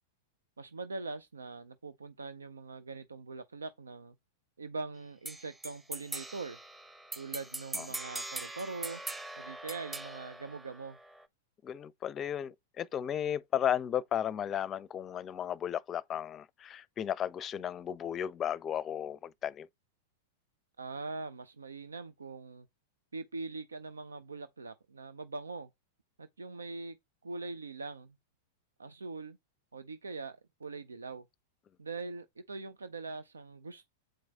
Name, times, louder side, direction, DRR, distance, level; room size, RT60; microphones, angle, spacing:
voice 1, 0.6-4.1 4.6-6.6 7.2-9.0 9.4-11.0 20.8-22.7 23.1-25.7 26.2-27.0 27.2-28.1 28.8-29.4 29.7-31.3 31.8-34.0, right 3 dB, 85° right, 0.5 m, -42 dB
sound 1, 5.2-11.2, right 2 dB, 10° right, 0.9 m, -42 dB
voice 2, 11.6-19.7, left 9 dB, 30° left, 0.5 m, -34 dB
7.8 x 4.6 x 4.1 m
hypercardioid pair, 100°, 0 cm